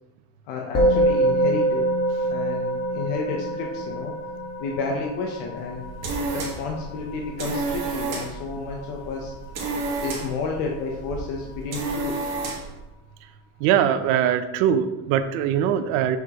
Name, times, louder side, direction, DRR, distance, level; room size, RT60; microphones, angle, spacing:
voice 1, 0.5-1.9 2.3-4.1 4.6-5.9 6.3-9.3 10.0-12.3, left 4 dB, 80° left, 0 dB, 1.1 m, -31 dB
Musical instrument, 0.7-10.3, right 1 dB, 35° left, 1.7 m, -26 dB
sound 1, 5.6-12.8, right 3 dB, 35° right, 1.7 m, -31 dB
voice 2, 13.6-16.2, right 9 dB, 85° right, 9 dB, 0.8 m, -21 dB
7.1 x 6.0 x 3.0 m, 1.0 s
cardioid pair, 165°, 43 cm